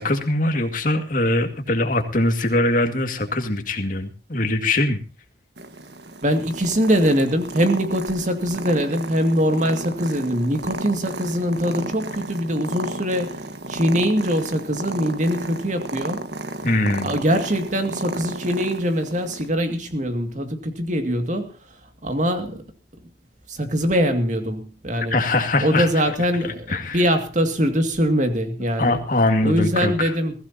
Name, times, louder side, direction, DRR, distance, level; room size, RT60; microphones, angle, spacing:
voice 1, 0.0-5.0 16.6-17.2 25.1-26.1 26.4-27.0 28.8-30.1, left 2 dB, 50° left, 2.2 m, -22 dB
Purr, 5.6-19.5, right 2 dB, 70° right, 1.6 m, -34 dB
voice 2, 6.2-13.4 13.7-16.3 17.0-21.5 22.0-22.6 23.5-25.2 25.6-29.0 29.4-30.3, equal, 45° right, 2.3 m, -22 dB
21.5 x 15.5 x 2.9 m
head